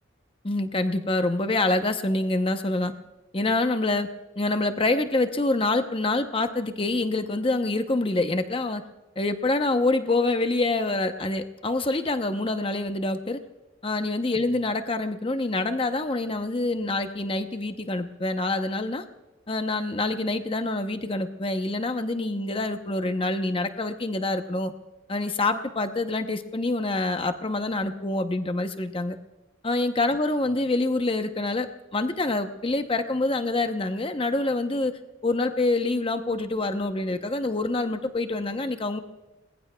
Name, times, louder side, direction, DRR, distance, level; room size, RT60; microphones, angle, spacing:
voice 1, 0.4-2.9 3.3-4.1 4.4-8.8 9.2-13.4 13.8-19.0 19.5-24.7 25.1-29.2 29.6-39.0, left 2 dB, 25° left, 8 dB, 0.8 m, -26 dB
30.0 x 20.5 x 2.3 m, 1.1 s
head